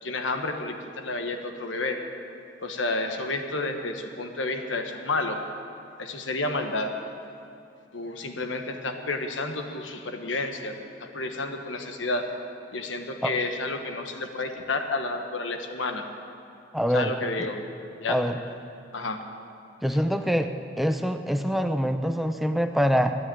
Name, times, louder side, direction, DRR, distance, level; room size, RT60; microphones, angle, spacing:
voice 1, 0.0-2.0 2.6-5.4 6.0-6.9 7.9-12.2 12.7-16.0 16.9-17.6 18.0-18.3 18.9-19.2, left 2 dB, 90° left, 5 dB, 1.3 m, -30 dB
voice 2, 16.7-17.1 18.1-18.4 19.8-20.5 20.8-23.2, equal, ahead, 7 dB, 0.5 m, -24 dB
13.0 x 9.9 x 8.6 m, 2.5 s
head